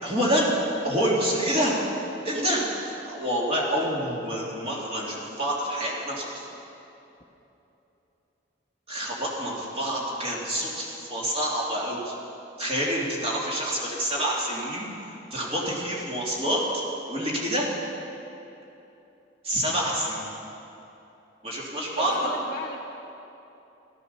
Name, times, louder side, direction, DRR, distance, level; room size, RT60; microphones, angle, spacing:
voice 1, 0.0-0.5 0.8-1.8 2.2-6.5 8.9-12.1 12.6-16.8 17.1-17.7 19.4-20.3 21.4-22.3, equal, 30° right, -4 dB, 2.8 m, -27 dB
voice 2, 22.0-22.8, equal, 20° left, -6 dB, 1.0 m, -36 dB
14.0 x 13.0 x 6.9 m, 2.9 s
head